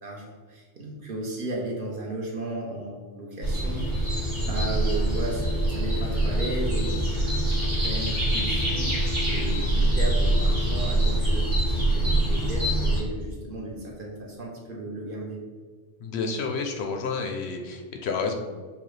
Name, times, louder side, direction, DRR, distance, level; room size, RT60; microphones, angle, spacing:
voice 1, 0.0-4.0 4.4-9.0 9.2-15.4, right 2 dB, 50° right, -2 dB, 0.9 m, -35 dB
sound 1, 3.4-13.0, right 1 dB, 85° right, 1.6 m, -24 dB
voice 2, 16.0-18.3, left 4 dB, 70° left, 3 dB, 0.8 m, -30 dB
6.9 x 2.3 x 3.1 m, 1.5 s
omnidirectional pair, 1.2 m